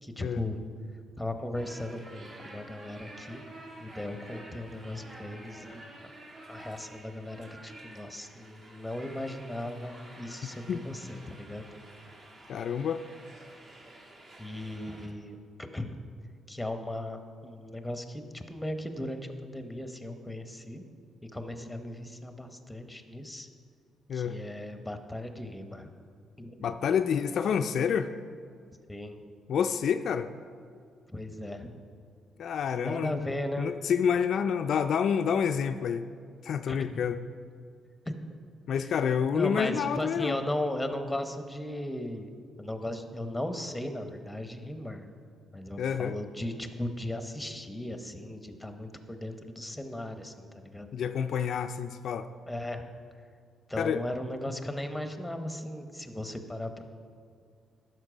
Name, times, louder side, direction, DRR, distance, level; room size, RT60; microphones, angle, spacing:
voice 1, 0.0-0.6 1.2-3.4 3.8-5.9 6.5-11.6 13.9-14.1 14.4-16.0 16.5-20.8 21.2-23.5 24.1-25.9 26.4-26.6 28.9-29.2 31.1-31.8 32.8-33.7 36.7-36.9 38.1-38.2 39.3-42.3 42.6-45.1 45.5-50.9 52.5-52.9 53.7-56.8, left 1 dB, 5° left, 7 dB, 0.9 m, -37 dB
sound 1, 1.5-15.1, right 1 dB, 45° right, 1.9 m, -50 dB
voice 2, 12.5-13.0 24.1-24.4 26.6-28.1 29.5-30.3 32.4-36.0 36.4-37.2 38.7-40.4 45.8-46.2 50.9-52.3 53.8-54.0, left 7 dB, 65° left, 8 dB, 0.3 m, -28 dB
12.0 x 6.2 x 5.0 m, 2.2 s
cardioid pair, 90°, 0 cm